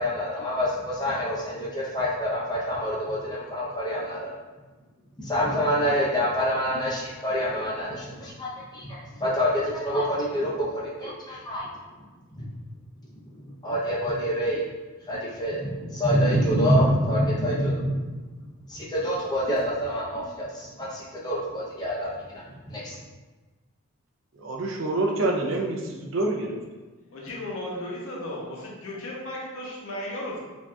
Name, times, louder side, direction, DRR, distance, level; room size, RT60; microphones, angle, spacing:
voice 1, 0.0-4.3 5.2-11.7 13.6-14.6 15.1-18.0 18.7-22.1 22.8-23.0, equal, 20° left, -6 dB, 0.7 m, -26 dB
voice 2, 24.4-26.6, right 2 dB, 65° right, 1 dB, 0.5 m, -27 dB
voice 3, 27.1-30.4, left 1 dB, 80° left, -3 dB, 0.9 m, -35 dB
4.5 x 2.8 x 2.3 m, 1.2 s
head